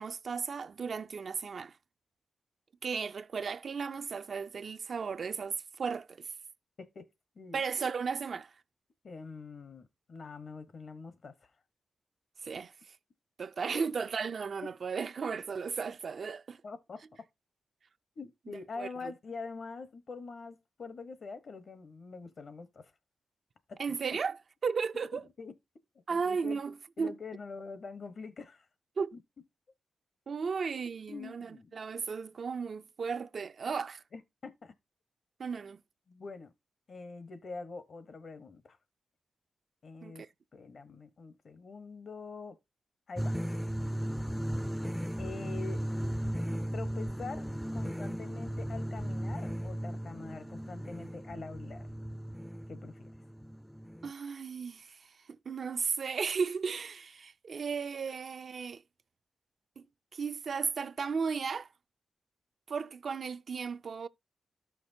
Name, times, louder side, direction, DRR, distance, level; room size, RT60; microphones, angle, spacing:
voice 1, 0.0-1.8 2.8-6.3 7.5-8.5 12.4-12.7 13.4-16.6 18.8-19.1 23.8-25.3 26.1-27.1 29.0-29.2 30.3-34.0 35.4-35.8 40.0-40.3 54.0-55.1 55.5-58.8 59.8-59.9 60.1-61.7 62.7-64.1, right 5 dB, 65° right, 0.4 m, -35 dB
voice 2, 6.8-7.1 7.3-7.6 9.0-11.4 14.6-14.7 16.6-17.0 18.2-22.9 23.7-24.0 25.1-25.5 26.1-26.6 27.0-28.7 29.1-29.2 31.1-31.7 34.1-34.7 36.1-36.5 36.9-38.8 39.8-42.6 43.1-43.4 45.2-45.8 46.7-51.9 52.7-53.1, left 4 dB, 65° left, 1.0 m, -45 dB
sound 1, 43.1-54.1, equal, 5° left, 0.4 m, -36 dB
13.0 x 5.8 x 2.6 m
cardioid pair, 65°, 0 cm